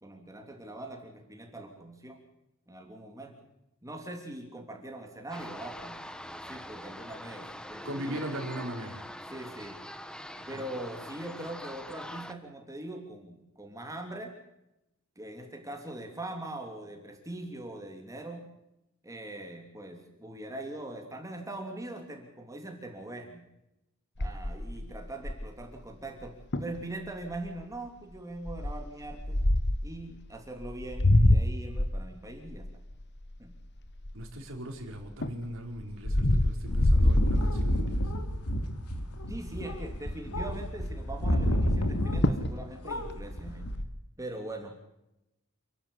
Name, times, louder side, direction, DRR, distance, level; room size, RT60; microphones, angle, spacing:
voice 1, 0.0-2.2 2.7-3.4 3.8-6.0 6.5-8.3 9.3-9.8 10.5-14.3 15.2-18.4 19.0-23.4 24.2-29.4 29.8-32.7 33.4-33.5 39.3-43.7 44.2-44.7, right 1 dB, 15° right, 3 dB, 3.0 m, -42 dB
sound 1, 5.3-12.3, equal, 5° left, 1.0 m, -43 dB
voice 2, 7.8-9.0 10.3-10.6 34.1-38.0, right 1 dB, 60° right, 2 dB, 4.8 m, -39 dB
sound 2, 24.2-25.7 26.2-26.3 26.5-26.8 27.3-27.6 28.5-29.9 30.6-34.5 35.0-38.0 38.5-38.8 39.0-39.1 39.4-40.1 41.8-41.9 42.2-42.6 42.9-43.9, left 1 dB, 50° left, 1.4 m, -26 dB
sound 3, 36.7-42.6 42.8-43.8, equal, 85° left, 2.9 m, -30 dB
29.0 x 11.5 x 8.4 m, 0.88 s
head